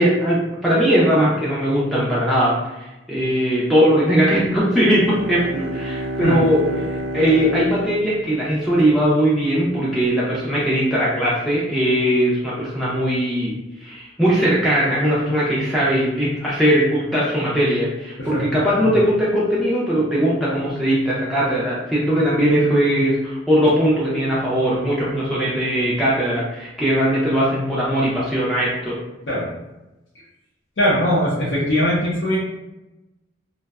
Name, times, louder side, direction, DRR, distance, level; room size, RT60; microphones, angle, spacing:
voice 1, 0.0-6.6 6.9-29.0, equal, ahead, -9 dB, 0.4 m, -19 dB
Bowed string instrument, 4.4-8.8, right 1 dB, 80° right, 0.3 m, -30 dB
voice 2, 30.8-32.4, equal, 70° left, -7 dB, 0.6 m, -20 dB
2.6 x 2.1 x 2.3 m, 1.0 s
head